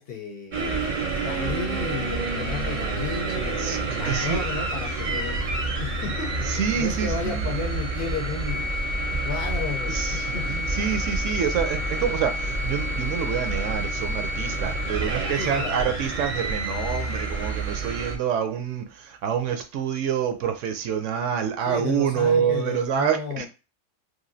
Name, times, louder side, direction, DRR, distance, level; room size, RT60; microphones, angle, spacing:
voice 1, 0.0-8.7 9.2-10.6 15.3-15.9 21.6-23.5, left 6 dB, 60° left, 0.7 m, -34 dB
sound 1, 0.5-18.2, right 2 dB, 50° right, 0.6 m, -28 dB
voice 2, 3.5-4.5 6.5-7.5 9.9-23.5, right 8 dB, 75° right, 0.9 m, -27 dB
3.1 x 2.5 x 2.6 m
omnidirectional pair, 1.3 m